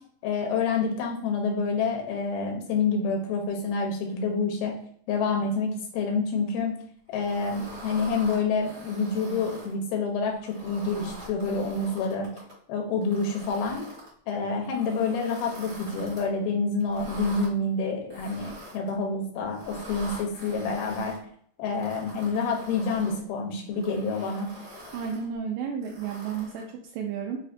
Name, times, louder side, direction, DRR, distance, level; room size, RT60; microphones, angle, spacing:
voice 1, 0.2-4.7 5.1-6.8 7.1-12.3 12.7-13.8 14.3-21.2 21.6-24.5, left 4 dB, 90° left, 2 dB, 2.7 m, -28 dB
sound 1, 7.2-9.7 10.3-12.5 13.0-14.1 14.6-16.3 16.8-17.5 18.1-18.9 19.5-21.2 21.7-23.2 23.7-25.2 25.8-26.7, equal, 60° right, 0.6 m, -44 dB
voice 2, 24.9-27.4, right 7 dB, 85° right, 1 dB, 1.8 m, -32 dB
6.2 x 2.1 x 2.6 m, 0.63 s
omnidirectional pair, 4.2 m